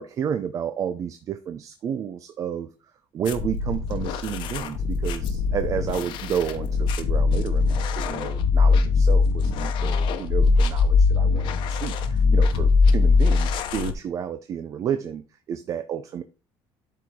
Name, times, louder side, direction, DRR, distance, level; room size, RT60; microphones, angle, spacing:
voice 1, 0.0-2.7 3.1-16.2, right 8 dB, 35° right, 9 dB, 0.6 m, -31 dB
Morph Neuro Bass, 3.3-13.9, left 4 dB, 65° left, 1.0 m, -21 dB
11.5 x 4.8 x 3.6 m, 0.32 s
cardioid pair, 160°, 9 cm